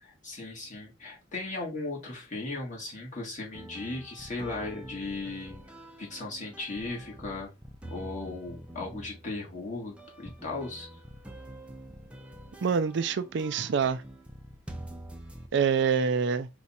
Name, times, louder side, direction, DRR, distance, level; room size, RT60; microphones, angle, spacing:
voice 1, 0.0-5.6 6.0-7.5 7.9-10.9, left 3 dB, 40° left, 1.8 m, -37 dB
sound 1, 3.5-15.5, right 1 dB, 5° right, 0.6 m, -46 dB
voice 2, 12.6-14.0 15.5-16.5, right 6 dB, 65° right, 0.4 m, -26 dB
5.1 x 2.4 x 4.2 m
head